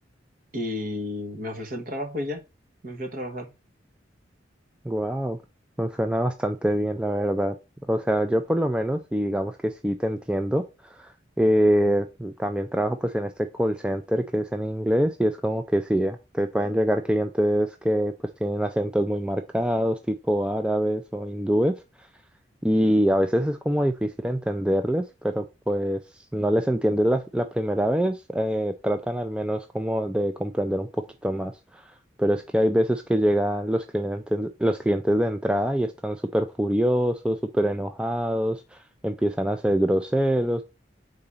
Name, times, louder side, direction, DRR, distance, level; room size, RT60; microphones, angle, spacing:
voice 1, 0.5-2.4 2.8-3.5, left 1 dB, 50° right, 1.3 m, -32 dB
voice 2, 4.8-5.4 5.8-7.6 7.9-11.1 11.4-18.1 18.4-21.8 22.6-31.8 32.2-40.6, equal, 5° right, 0.4 m, -25 dB
4.9 x 3.9 x 5.5 m
head